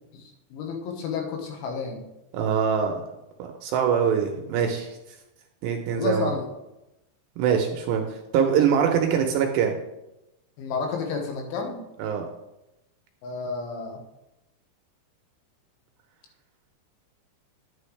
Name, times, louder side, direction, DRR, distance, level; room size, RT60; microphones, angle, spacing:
voice 1, 0.1-2.1 5.9-6.5 10.6-11.8 13.2-14.0, left 4 dB, 80° left, 3 dB, 3.8 m, -31 dB
voice 2, 2.3-3.0 3.4-5.0 5.6-6.3 7.4-9.8 12.0-12.3, right 7 dB, 75° right, 3 dB, 2.7 m, -23 dB
10.5 x 9.1 x 3.3 m, 0.91 s
omnidirectional pair, 5.5 m